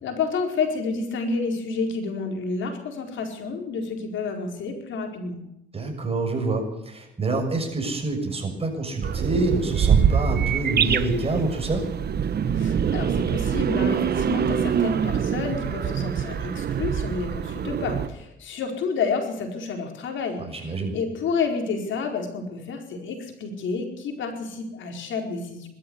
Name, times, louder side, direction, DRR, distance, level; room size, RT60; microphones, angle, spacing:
voice 1, 0.0-5.4 12.6-25.7, left 4 dB, 75° left, 4 dB, 4.7 m, -30 dB
voice 2, 5.7-11.8 20.4-21.0, right 2 dB, 30° right, 3 dB, 6.7 m, -27 dB
sound 1, 9.0-18.1, right 7 dB, 55° right, 1.3 m, -24 dB
20.5 x 13.0 x 9.6 m, 0.83 s
cardioid pair, 90°, 20 cm